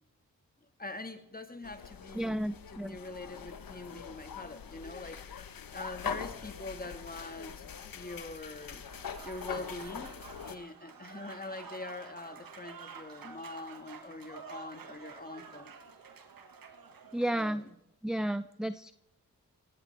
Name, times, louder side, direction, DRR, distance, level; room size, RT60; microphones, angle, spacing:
voice 1, 0.8-2.4 2.7-7.6 7.9-8.8 9.2-15.7 17.3-17.8, left 2 dB, 25° left, 8 dB, 2.0 m, -44 dB
sound 1, 1.6-10.6, left 8 dB, 70° left, 1.2 m, -43 dB
voice 2, 2.1-3.0 17.1-17.6 18.0-18.9, right 1 dB, ahead, 13 dB, 0.6 m, -32 dB
Applause / Crowd, 8.8-17.6, right 6 dB, 70° right, 2.0 m, -50 dB
18.5 x 16.5 x 3.5 m, 0.86 s
cardioid pair, 45°, 36 cm